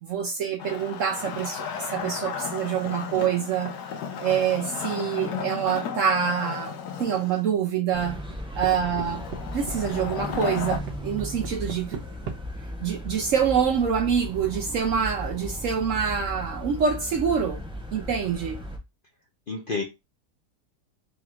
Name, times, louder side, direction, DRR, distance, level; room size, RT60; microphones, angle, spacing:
voice 1, 0.0-3.7 4.2-8.2 8.5-9.3 9.5-12.0 12.8-17.6 17.9-18.6, right 7 dB, 65° right, 0.8 m, -26 dB
Wood, 0.6-7.4 9.0-10.8, left 7 dB, 75° left, 1.3 m, -34 dB
sound 1, 7.9-18.8, left 1 dB, 5° right, 0.4 m, -36 dB
sound 2, 8.0-8.7 9.0-9.4 9.7-12.4, right 7 dB, 85° right, 1.4 m, -36 dB
voice 2, 8.7-9.2 19.5-19.8, left 4 dB, 50° left, 0.6 m, -32 dB
4.0 x 2.5 x 4.4 m
omnidirectional pair, 1.8 m